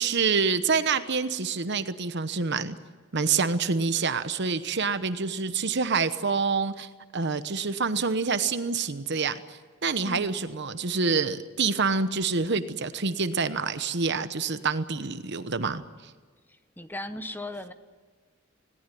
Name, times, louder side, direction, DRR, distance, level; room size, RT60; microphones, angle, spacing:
voice 1, 0.0-2.7 3.1-15.8, right 5 dB, 60° right, 11 dB, 1.1 m, -27 dB
voice 2, 10.0-10.4 16.5-17.7, left 1 dB, 10° left, 10 dB, 1.0 m, -38 dB
20.5 x 18.5 x 9.3 m, 1.4 s
head